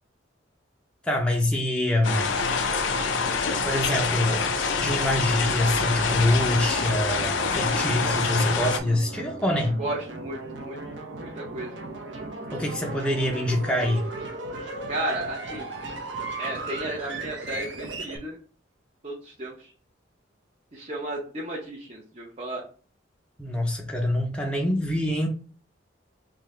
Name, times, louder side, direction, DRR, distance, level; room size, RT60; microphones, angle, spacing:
voice 1, 1.0-2.3 3.6-4.5 4.7-9.8 12.5-14.0 23.4-25.3, left 1 dB, 5° left, 0.5 m, -25 dB
sound 1, 2.0-8.8, left 4 dB, 85° left, 0.5 m, -26 dB
sound 2, 2.3-18.2, right 2 dB, 75° right, 0.7 m, -37 dB
voice 2, 9.8-10.8 11.2-11.7 14.9-15.8 16.4-18.4 19.0-19.7 20.7-22.6, right 1 dB, 35° right, 0.8 m, -34 dB
3.6 x 2.7 x 3.2 m
head